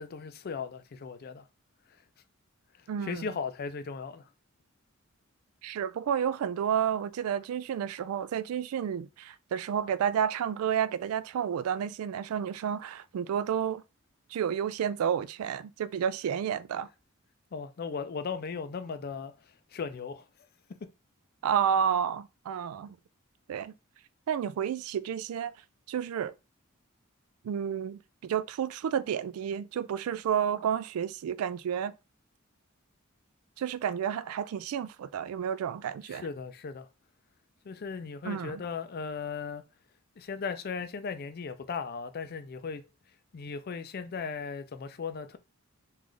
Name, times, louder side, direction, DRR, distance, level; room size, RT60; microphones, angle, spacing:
voice 1, 0.0-1.4 3.0-4.2 17.5-19.3 19.7-20.2 36.1-36.9 37.6-39.6 40.2-42.8 43.3-45.4, left 5 dB, 45° left, 0.4 m, -37 dB
voice 2, 2.9-3.2 5.6-13.8 14.3-16.9 21.4-23.0 23.5-23.7 24.3-25.5 25.9-26.3 27.4-31.9 33.6-36.3 38.2-38.6, right 8 dB, 90° right, 0.3 m, -31 dB
3.2 x 2.5 x 3.7 m
head